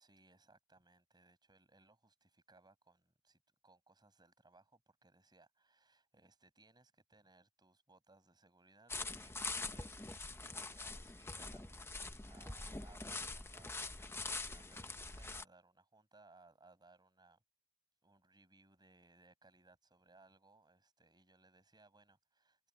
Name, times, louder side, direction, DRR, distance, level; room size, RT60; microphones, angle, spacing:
voice 1, 0.0-17.4 18.0-22.7, right 3 dB, 20° right, 6.0 m, -66 dB
sound 1, 8.9-15.4, left 3 dB, 10° left, 0.9 m, -44 dB
head